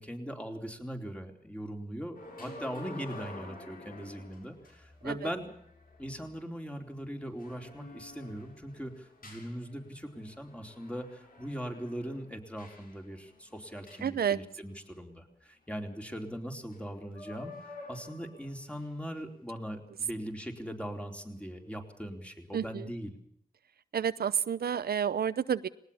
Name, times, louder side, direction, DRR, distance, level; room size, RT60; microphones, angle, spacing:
voice 1, 0.0-5.6 6.0-17.6 17.9-23.2, equal, 10° left, 3 dB, 4.1 m, -40 dB
sound 1, 2.1-14.9 16.7-16.8 17.1-19.0 19.6-19.8, left 2 dB, 65° left, 7.0 m, -50 dB
voice 2, 14.0-14.4 22.5-22.9 23.9-25.7, right 8 dB, 85° right, 15 dB, 0.8 m, -30 dB
20.0 x 19.0 x 7.2 m, 0.69 s
wide cardioid pair, 75°, 16 cm